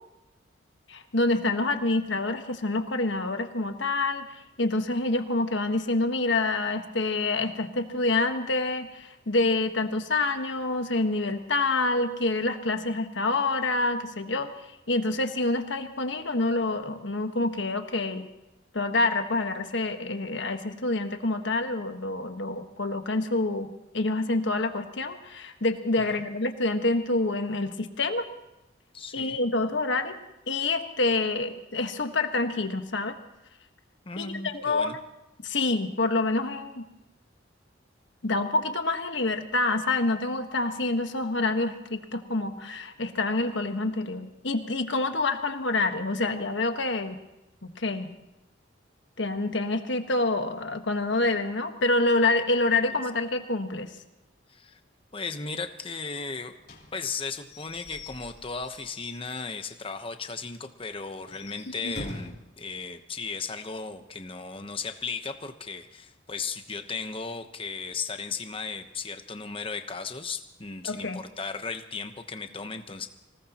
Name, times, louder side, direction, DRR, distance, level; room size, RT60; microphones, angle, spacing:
voice 1, 0.9-4.2 4.6-14.5 14.9-18.2 18.7-23.7 23.9-28.3 29.1-30.2 30.5-33.2 34.2-35.0 35.4-36.9 38.2-47.2 47.6-48.1 49.2-53.9 61.8-61.9 70.8-71.2, left 2 dB, 65° left, 6 dB, 1.4 m, -27 dB
voice 2, 28.9-29.4 34.0-35.0 54.5-54.8 55.1-56.5 56.9-73.1, left 4 dB, 25° left, 7 dB, 1.0 m, -36 dB
Slam / Squeak / Wood, 56.6-59.8 60.2-60.3 60.6-60.7 61.2-62.5, left 1 dB, 50° left, 3.6 m, -44 dB
25.5 x 18.5 x 3.0 m, 0.95 s
head